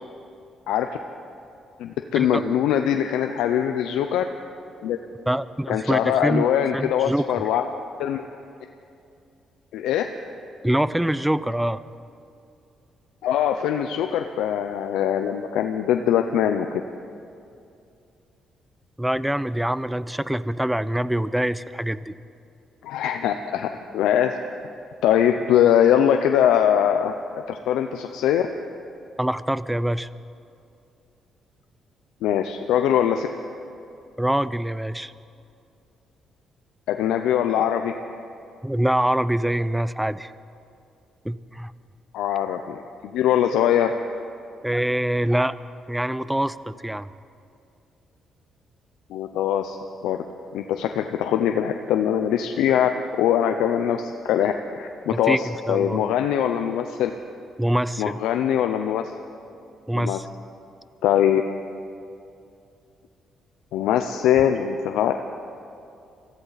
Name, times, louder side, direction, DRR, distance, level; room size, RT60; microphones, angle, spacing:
voice 1, 1.8-4.2 4.8-5.0 5.7-7.6 8.0-8.2 9.7-10.0 13.2-16.8 22.8-24.3 25.0-27.1 27.5-28.5 32.2-33.3 36.9-37.9 42.1-43.9 49.1-49.8 50.0-50.2 50.5-57.1 58.0-59.1 59.9-60.2 61.0-61.4 63.7-65.1, left 10 dB, 90° left, 6 dB, 0.6 m, -22 dB
voice 2, 5.3-6.5 6.7-7.2 10.6-11.8 19.0-22.1 29.2-30.1 34.2-35.1 38.6-40.3 41.2-41.7 44.6-45.6 45.9-47.1 55.1-56.0 57.6-58.1 59.9-60.2, right 1 dB, 5° right, 16 dB, 0.5 m, -24 dB
24.5 x 14.5 x 4.1 m, 2.5 s
cardioid pair, 90°, 0 cm